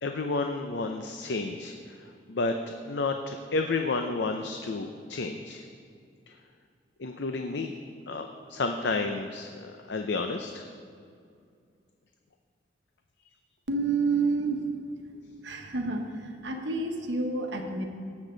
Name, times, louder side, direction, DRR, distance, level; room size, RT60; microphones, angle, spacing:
voice 1, 0.0-5.6 6.3-6.4 7.0-7.7 8.1-10.7, left 3 dB, 75° left, 5 dB, 0.6 m, -31 dB
voice 2, 13.7-14.7 15.4-17.9, right 3 dB, 85° right, 3 dB, 1.3 m, -29 dB
17.5 x 7.5 x 3.9 m, 2.3 s
head